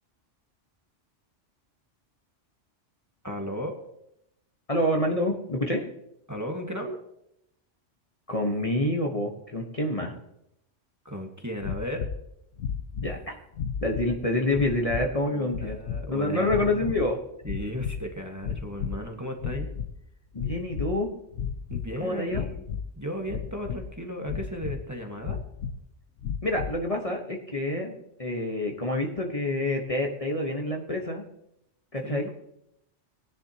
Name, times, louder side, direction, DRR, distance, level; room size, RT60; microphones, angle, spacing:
voice 1, 3.2-3.8 6.3-7.0 11.0-12.1 15.2-16.8 17.4-19.7 21.7-22.6 23.0-25.4 32.0-32.3, equal, 15° right, 2 dB, 1.4 m, -35 dB
voice 2, 4.7-5.8 8.3-10.1 13.0-13.4 13.8-15.8 16.1-17.2 20.3-21.1 22.0-22.4 26.4-31.2 31.9-32.3, left 1 dB, 30° left, 1 dB, 1.2 m, -27 dB
sound 1, 11.6-12.2 12.6-13.2 13.5-14.2 14.5-15.1 15.5-16.0 16.5-17.1 17.4-18.1 18.4-19.0 19.4-19.9 20.3-21.0 21.3-21.9 22.3-22.9 23.3-23.9 24.2-24.8 25.2-25.8 26.2-26.8, left 7 dB, 75° left, 1.1 m, -33 dB
19.5 x 10.5 x 2.9 m, 0.78 s
omnidirectional pair, 1.3 m